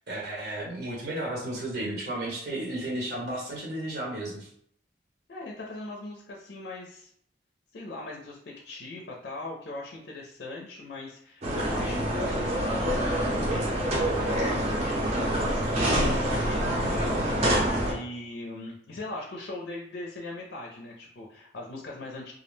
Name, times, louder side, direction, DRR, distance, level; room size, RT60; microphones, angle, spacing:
voice 1, 0.1-4.5, right 1 dB, 65° right, -4 dB, 0.8 m, -33 dB
voice 2, 5.3-7.1 7.7-22.3, left 2 dB, 75° left, -2 dB, 0.4 m, -40 dB
sound 1, 11.4-17.9, right 1 dB, 35° right, 0.6 m, -26 dB
2.3 x 2.1 x 3.1 m, 0.67 s
head